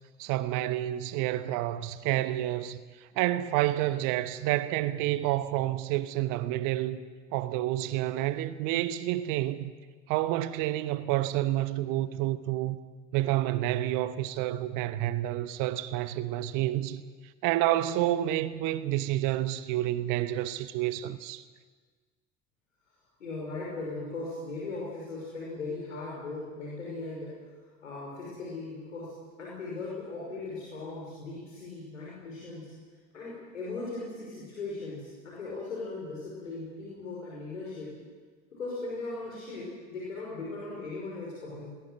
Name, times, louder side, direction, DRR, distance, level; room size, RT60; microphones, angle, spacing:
voice 1, 0.2-2.8 3.2-7.0 7.3-9.7 10.1-12.8 13.1-17.0 17.4-21.4, right 14 dB, 55° right, 1.1 m, -29 dB
voice 2, 23.2-27.3 27.8-29.1 29.4-32.7 33.1-37.9 38.5-41.7, left 3 dB, 80° left, 5.4 m, -38 dB
21.5 x 20.0 x 7.7 m
figure-of-eight pair, 60°, 38 cm